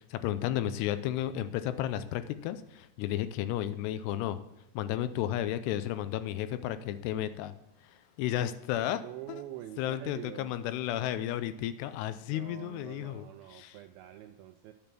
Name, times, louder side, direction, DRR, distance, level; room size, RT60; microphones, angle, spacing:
voice 1, 0.1-4.4 4.7-7.5 8.2-9.0 9.8-13.3 13.5-13.8, left 12 dB, 85° left, 12 dB, 2.7 m, -33 dB
voice 2, 8.8-10.6 12.3-14.7, right 13 dB, 85° right, 6 dB, 2.1 m, -46 dB
10.5 x 7.1 x 6.0 m, 0.80 s
omnidirectional pair, 4.7 m